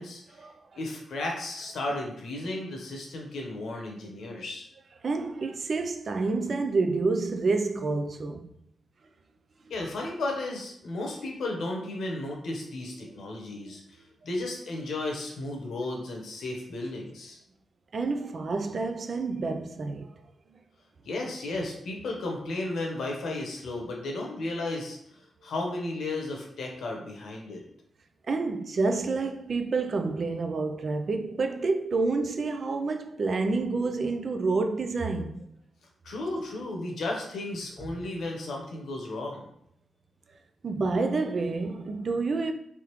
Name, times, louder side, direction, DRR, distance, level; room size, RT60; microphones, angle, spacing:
voice 1, 0.0-0.4 0.7-4.7 9.7-17.4 21.0-25.0 25.4-27.6 36.0-39.4, left 2 dB, 75° left, 1.0 m, -34 dB
voice 2, 5.0-8.6 17.9-20.2 28.3-35.5 36.3-36.4 40.6-42.5, right 3 dB, 45° right, 0.4 m, -28 dB
3.6 x 3.4 x 3.0 m
wide cardioid pair, 140°, 0 cm